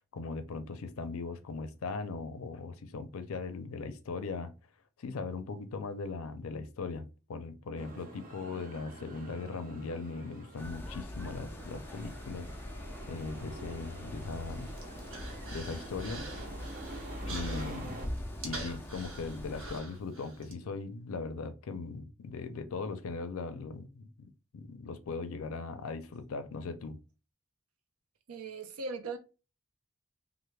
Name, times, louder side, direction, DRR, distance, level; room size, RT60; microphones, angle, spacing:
voice 1, 0.0-4.5 5.0-12.5 13.1-14.7 15.5-16.3 17.2-18.0 18.4-27.0, left 4 dB, 75° left, 0.4 m, -39 dB
sound 1, 7.8-18.1, right 2 dB, 40° right, 0.6 m, -48 dB
sound 2, 10.6-19.8, left 1 dB, 10° left, 0.3 m, -42 dB
Human voice, 14.3-20.5, right 3 dB, 60° right, 0.9 m, -46 dB
voice 2, 28.3-29.2, right 3 dB, 85° right, 0.5 m, -39 dB
3.1 x 2.0 x 3.2 m
head